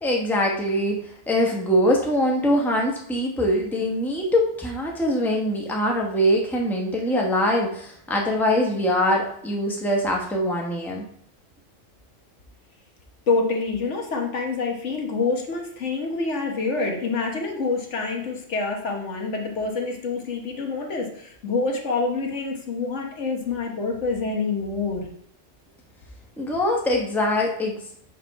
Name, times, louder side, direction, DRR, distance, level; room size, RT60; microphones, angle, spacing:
voice 1, 0.0-11.0 26.4-27.8, equal, ahead, -1 dB, 1.0 m, -23 dB
voice 2, 13.3-25.1, left 4 dB, 65° left, 2 dB, 1.4 m, -26 dB
5.0 x 4.3 x 5.6 m, 0.65 s
omnidirectional pair, 1.3 m